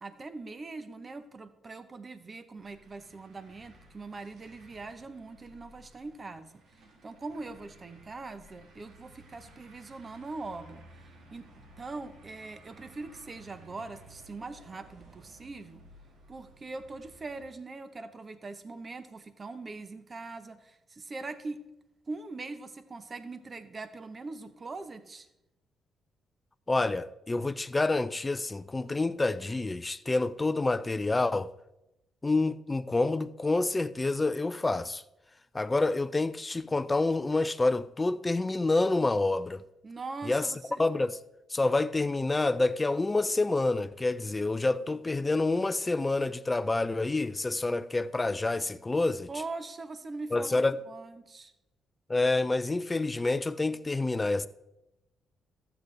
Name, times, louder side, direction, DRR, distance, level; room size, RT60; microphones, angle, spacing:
voice 1, 0.0-6.5 7.0-10.8 11.3-11.5 11.8-15.8 16.3-21.6 22.1-25.3 39.8-40.8 49.3-51.5, right 3 dB, 30° right, 0.9 m, -42 dB
sound 1, 2.6-17.4, right 1 dB, 75° right, 1.8 m, -56 dB
voice 2, 26.7-31.5 32.2-35.0 35.5-39.6 40.2-40.5 40.8-41.2 41.5-49.3 50.3-50.8 52.1-54.5, left 2 dB, 20° left, 0.4 m, -28 dB
13.0 x 8.0 x 3.2 m
cardioid pair, 90°, 0 cm